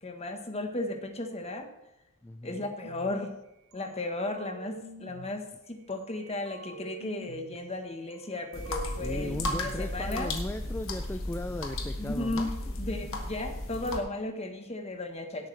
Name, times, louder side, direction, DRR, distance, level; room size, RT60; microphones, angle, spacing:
voice 1, 0.0-1.7 2.4-3.3 3.7-10.3 12.0-12.5 12.8-15.5, left 2 dB, 30° left, 5 dB, 1.3 m, -35 dB
voice 2, 2.2-2.7 9.0-12.5, left 1 dB, 10° left, 7 dB, 0.3 m, -37 dB
sound 1, 2.8-3.2 3.7-5.4 5.9-7.6 8.1-9.8, right 4 dB, 65° right, 0.7 m, -47 dB
sound 2, 8.5-14.0, left 1 dB, 65° left, 1.7 m, -35 dB
17.0 x 8.5 x 3.3 m, 0.91 s
head